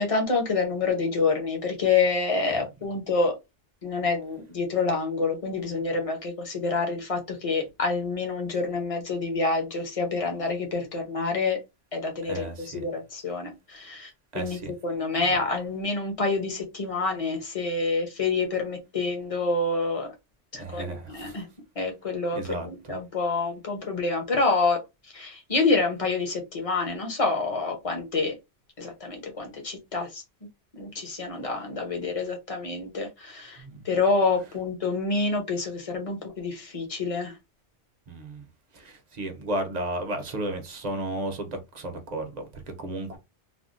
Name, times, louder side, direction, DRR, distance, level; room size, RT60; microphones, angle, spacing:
voice 1, 0.0-3.3 3.8-11.6 11.9-12.5 12.7-14.1 14.3-20.1 20.5-21.5 21.8-24.8 25.1-28.3 28.8-30.2 30.7-37.3, left 3 dB, 35° left, 0.8 m, -27 dB
voice 2, 12.2-12.8 14.3-14.7 15.3-15.4 20.5-21.4 22.4-22.9 33.6-33.8 38.1-38.4 38.7-43.2, right 1 dB, 45° right, 0.7 m, -34 dB
3.5 x 2.2 x 2.5 m
omnidirectional pair, 1.2 m